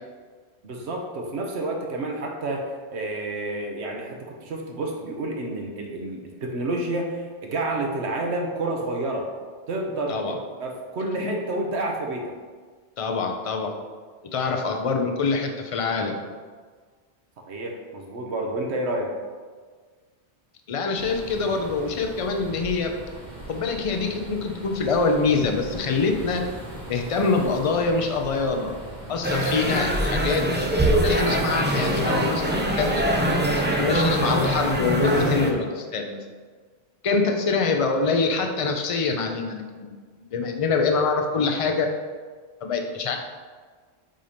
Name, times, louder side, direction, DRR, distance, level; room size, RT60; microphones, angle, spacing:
voice 1, 0.6-9.3 9.7-12.3 17.4-19.1, right 2 dB, 80° right, 1 dB, 1.2 m, -29 dB
voice 2, 13.0-13.7 14.3-16.2 20.7-22.9 23.5-26.4 26.9-28.7 29.1-30.4 30.9-33.0 33.8-36.2 37.0-39.9 40.3-41.9 42.6-43.2, left 4 dB, 40° left, 3 dB, 0.6 m, -25 dB
sound 1, 21.0-35.2, right 1 dB, 40° right, 1.4 m, -39 dB
sound 2, 29.2-35.5, right 1 dB, 15° right, 0.5 m, -23 dB
7.6 x 2.8 x 5.0 m, 1.5 s
omnidirectional pair, 1.1 m